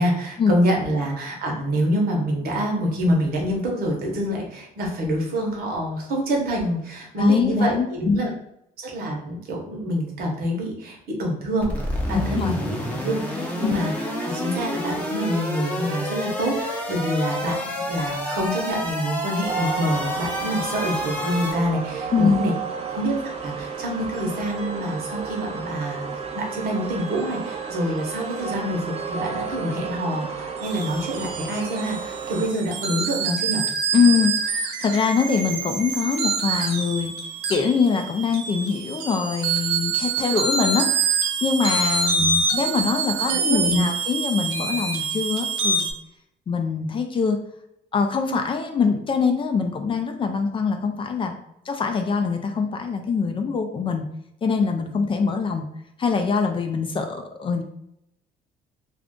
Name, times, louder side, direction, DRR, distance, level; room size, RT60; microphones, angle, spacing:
voice 1, 0.0-8.3 8.8-22.5 22.9-23.1 23.4-26.0 26.3-33.6 42.1-42.4 43.2-43.8, equal, 65° right, 0 dB, 1.0 m, -26 dB
voice 2, 7.2-8.2 12.1-12.5 13.6-13.8 22.1-22.4 33.9-37.1 37.5-41.1 41.4-42.2 42.5-45.9 46.5-47.4 47.9-51.3 51.7-54.0 54.4-55.6 56.0-57.6, left 5 dB, 30° left, 5 dB, 0.4 m, -23 dB
sound 1, 11.6-21.5, left 1 dB, 10° left, 0.7 m, -29 dB
sound 2, 19.5-32.5, right 6 dB, 40° right, 0.6 m, -32 dB
sound 3, 30.6-45.9, right 4 dB, 90° right, 0.5 m, -26 dB
2.5 x 2.4 x 3.6 m, 0.78 s
cardioid pair, 110°, 17 cm